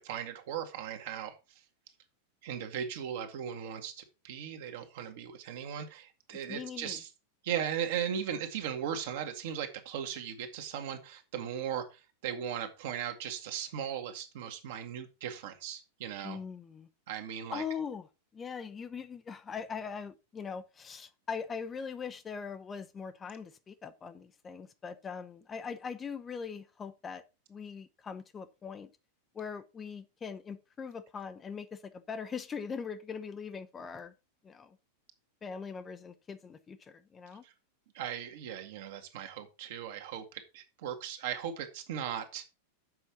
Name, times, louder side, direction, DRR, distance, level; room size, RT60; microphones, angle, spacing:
voice 1, 0.0-1.4 2.4-7.1 7.4-16.4 17.1-17.6 37.4-37.5 37.9-42.4, right 9 dB, 55° right, 1.7 m, -38 dB
voice 2, 6.5-7.0 16.2-16.9 17.5-18.1 18.3-27.2 27.5-28.9 29.3-34.1 34.4-34.8 35.4-37.4, left 6 dB, 20° left, 0.7 m, -41 dB
7.7 x 5.6 x 5.7 m
figure-of-eight pair, 90°, 0 cm